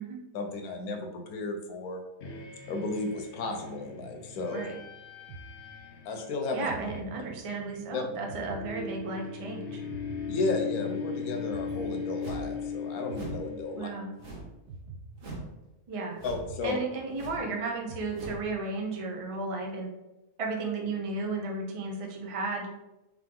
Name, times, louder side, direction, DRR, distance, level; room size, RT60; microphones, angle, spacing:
voice 1, 0.3-2.0 2.7-4.7 6.0-6.7 7.9-8.0 10.3-13.9 16.2-16.8, left 3 dB, 75° left, 4 dB, 1.2 m, -33 dB
sound 1, 2.2-14.3, left 6 dB, 60° left, 0.6 m, -39 dB
sound 2, 5.3-6.2 6.7-7.7 8.3-9.4 9.9-11.1 11.5-12.7 13.1-14.1 14.7-15.8 16.3-17.5 17.9-18.8, right 3 dB, 90° right, 1.1 m, -47 dB
voice 2, 6.5-9.8 13.7-14.1 15.9-16.2 16.6-19.9 20.4-22.7, right 3 dB, 60° right, 1 dB, 0.3 m, -34 dB
sound 3, 12.2-12.6 13.1-13.5 14.2-14.6 15.2-15.5 16.2-16.5 17.1-17.5 18.1-18.5, right 2 dB, 40° right, 1.0 m, -41 dB
3.5 x 3.2 x 3.7 m, 0.96 s
omnidirectional pair, 1.6 m